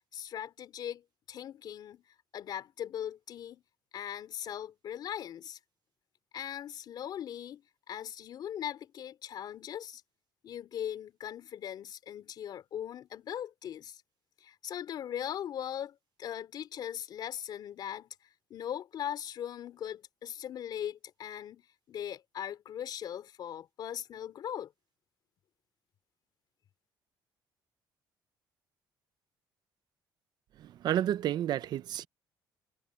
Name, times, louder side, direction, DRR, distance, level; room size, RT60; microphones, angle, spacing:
voice 1, 0.1-2.0 2.3-3.6 3.9-5.6 6.3-10.0 10.4-14.0 14.4-18.1 18.5-21.6 21.9-24.7, left 10 dB, 60° left, 3.3 m, -39 dB
voice 2, 30.6-32.1, right 11 dB, 65° right, 0.8 m, -31 dB
cardioid pair, 95°, 8 cm